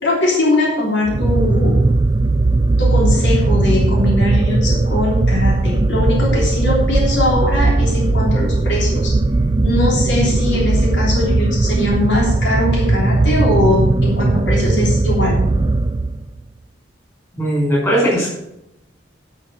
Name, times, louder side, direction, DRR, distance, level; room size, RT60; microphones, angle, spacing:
voice 1, 0.0-1.8 2.8-9.2 9.6-15.5, left 2 dB, 70° left, -2 dB, 3.3 m, -20 dB
sound 1, 1.1-16.4, right 2 dB, 25° right, 0.3 m, -17 dB
voice 2, 17.4-18.3, equal, 15° left, -4 dB, 5.0 m, -17 dB
11.5 x 6.1 x 6.4 m, 0.84 s
head